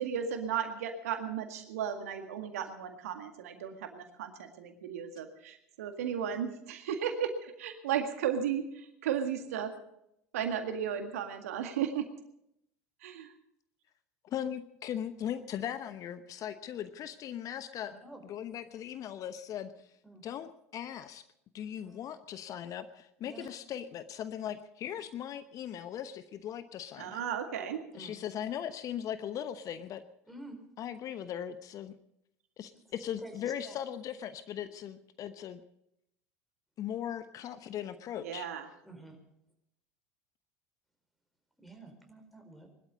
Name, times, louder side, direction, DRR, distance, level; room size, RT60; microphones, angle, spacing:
voice 1, 0.0-9.7 10.3-12.0 13.0-13.3 27.0-27.8 38.2-38.7, right 8 dB, 75° right, 6 dB, 1.9 m, -35 dB
voice 2, 14.2-17.9 18.2-19.9 20.2-21.2 21.5-27.2 27.9-30.0 30.8-31.9 32.6-35.6 36.8-38.5, left 10 dB, 45° left, 12 dB, 1.0 m, -39 dB
voice 3, 17.8-18.2 20.0-20.2 21.8-22.1 23.2-23.5 27.9-28.2 30.3-30.6 33.2-33.8 38.8-39.2 41.6-42.7, right 2 dB, ahead, 5 dB, 4.6 m, -49 dB
21.0 x 12.5 x 5.3 m, 0.77 s
hypercardioid pair, 75°, 8 cm